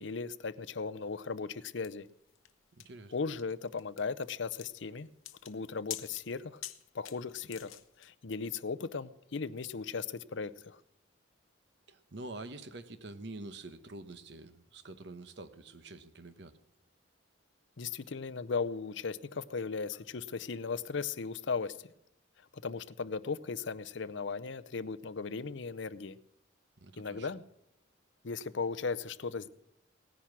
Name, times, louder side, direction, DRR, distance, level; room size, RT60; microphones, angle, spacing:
voice 1, 0.0-2.1 3.1-5.1 5.4-6.6 6.9-10.8 17.8-21.8 22.6-26.2 27.0-27.4 28.2-29.5, left 5 dB, 65° left, 14 dB, 0.6 m, -37 dB
sound 1, 1.8-8.1, left 13 dB, 85° left, 0.9 m, -47 dB
voice 2, 2.8-3.1 11.9-16.6 26.8-27.3, right 2 dB, 60° right, 12 dB, 1.0 m, -46 dB
18.0 x 10.0 x 6.1 m, 0.80 s
head